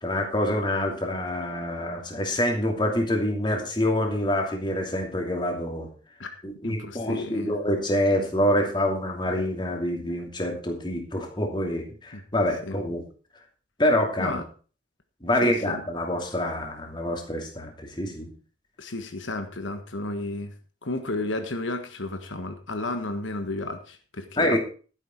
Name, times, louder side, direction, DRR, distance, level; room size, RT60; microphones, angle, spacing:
voice 1, 0.0-5.9 6.4-13.0 13.8-14.4 15.2-18.3 24.4-24.6, left 1 dB, 25° left, 3 dB, 2.8 m, -26 dB
voice 2, 6.6-7.5 12.1-12.2 12.6-12.8 14.2-14.4 15.4-15.8 18.8-20.5 20.8-24.6, left 2 dB, 80° left, 7 dB, 1.5 m, -32 dB
12.5 x 9.8 x 4.6 m, 0.38 s
head